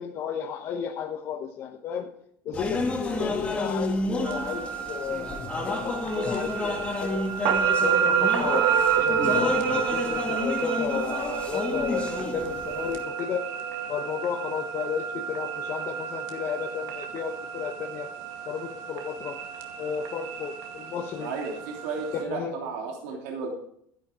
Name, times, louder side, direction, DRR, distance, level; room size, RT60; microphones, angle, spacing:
voice 1, 0.0-2.1 2.4-7.2 7.8-8.6 8.9-13.4 13.9-18.1 18.5-19.4 19.8-21.3 22.1-22.6, left 7 dB, 40° left, 2 dB, 1.2 m, -33 dB
sound 1, 2.5-13.0, left 2 dB, 15° left, 2.0 m, -30 dB
sound 2, 4.2-22.2, right 8 dB, 60° right, 2.1 m, -30 dB
voice 2, 21.2-23.5, right 5 dB, 90° right, 0 dB, 3.0 m, -33 dB
13.0 x 10.5 x 5.0 m, 0.67 s
cardioid pair, 160°, 7 cm